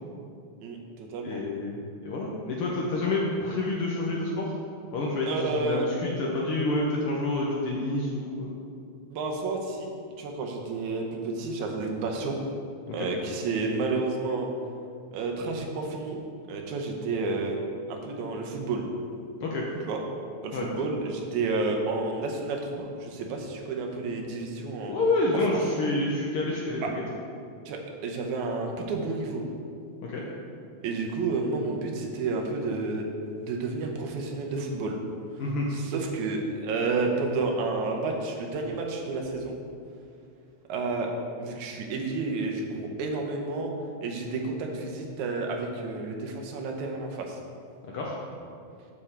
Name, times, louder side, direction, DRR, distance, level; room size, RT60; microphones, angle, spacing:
voice 1, 0.6-1.4 5.3-5.8 9.1-9.9 10.2-12.4 12.9-14.5 15.1-16.2 16.5-17.6 17.9-18.9 19.9-20.0 20.4-25.0 26.8-26.9 27.7-29.4 30.8-33.1 33.4-35.0 35.7-39.5 40.7-41.1 41.4-43.7 44.0-47.4, right 3 dB, 85° right, 1 dB, 2.2 m, -30 dB
voice 2, 1.2-4.6 4.9-8.5 12.9-13.1 19.4-19.7 20.5-20.7 24.9-27.0 30.0-30.3 35.4-35.7 47.9-48.1, left 2 dB, 75° left, -3 dB, 1.3 m, -28 dB
7.1 x 6.4 x 4.3 m, 2.4 s
omnidirectional pair, 3.4 m